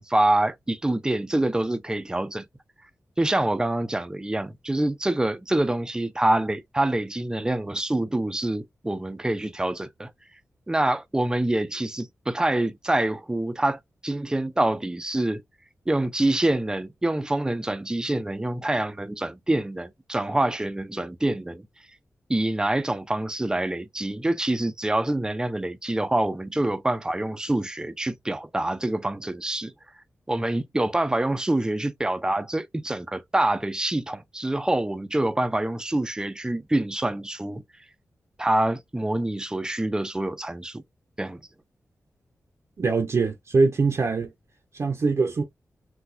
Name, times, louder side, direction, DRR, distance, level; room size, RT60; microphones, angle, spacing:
voice 1, 0.0-2.4 3.2-10.1 10.7-15.4 15.9-21.6 22.3-29.7 30.3-37.6 38.4-40.8 41.2-41.4, right 1 dB, 15° right, 0.4 m, -26 dB
voice 2, 42.8-44.3 44.7-45.4, right 4 dB, 55° right, 0.6 m, -23 dB
4.0 x 2.2 x 2.6 m
wide cardioid pair, 80°, 6 cm